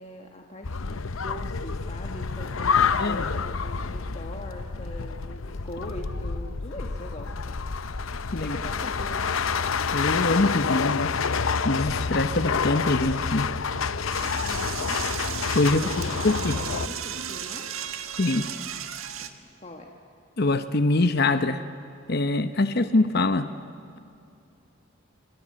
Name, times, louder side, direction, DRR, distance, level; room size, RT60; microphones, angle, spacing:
voice 1, 0.0-7.6 8.4-9.4 14.4-15.0 15.7-17.7 19.6-19.9, left 1 dB, 30° left, 2 dB, 1.6 m, -41 dB
sound 1, 0.6-16.9, left 5 dB, 75° left, 0.8 m, -28 dB
voice 2, 9.9-11.2 11.6-13.5 15.5-16.6 18.2-18.5 20.4-21.6 22.1-23.5, left 2 dB, 50° left, 10 dB, 0.9 m, -24 dB
Door / Toilet flush, 14.1-19.3, right 8 dB, 75° right, 1.5 m, -35 dB
28.5 x 25.5 x 7.7 m, 2.7 s
head